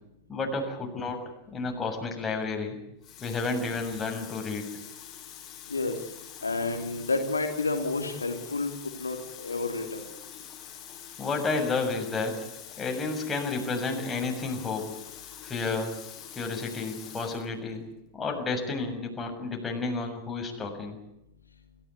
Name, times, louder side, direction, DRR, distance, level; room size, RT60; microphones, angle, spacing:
voice 1, 0.3-1.2 1.5-2.8 3.2-4.7 11.2-12.5 12.8-14.9 15.4-16.0 16.3-17.8 18.1-21.0, left 3 dB, 15° left, 2 dB, 7.0 m, -31 dB
Water tap faucet, 2.2-2.4 3.0-17.5 18.4-18.6, left 10 dB, 30° left, 6.1 m, -45 dB
voice 2, 6.4-8.7 9.0-10.0, left 3 dB, 75° left, 4 dB, 2.9 m, -30 dB
29.0 x 16.0 x 9.7 m, 0.85 s
figure-of-eight pair, 90°, 0 cm